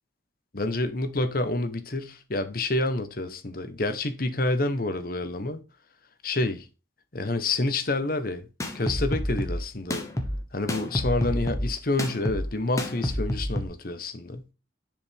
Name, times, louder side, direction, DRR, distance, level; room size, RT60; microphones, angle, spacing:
voice 1, 0.5-5.6 6.2-6.6 7.1-8.5 8.7-10.1 10.5-14.4, left 2 dB, 50° left, 1.1 m, -28 dB
sound 1, 8.6-13.6, equal, 15° left, 1.2 m, -29 dB
9.9 x 5.2 x 3.5 m
head